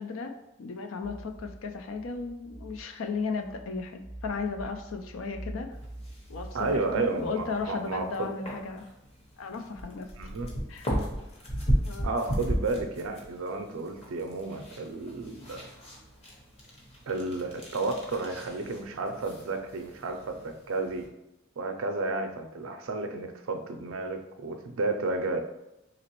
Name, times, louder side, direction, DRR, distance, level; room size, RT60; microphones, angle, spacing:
voice 1, 0.0-5.8 6.3-6.6 7.0-8.9 9.4-10.3 10.7-10.9 11.7-12.2, left 4 dB, 80° left, 6 dB, 0.4 m, -35 dB
sound 1, 1.0-8.5, right 1 dB, ahead, 0.3 m, -46 dB
sound 2, 5.7-21.0, equal, 30° left, 0.8 m, -36 dB
voice 2, 6.5-8.3 10.2-10.5 12.0-15.6 17.1-21.1 21.6-25.4, right 3 dB, 85° right, 6 dB, 0.5 m, -32 dB
4.0 x 2.9 x 2.9 m, 0.91 s
head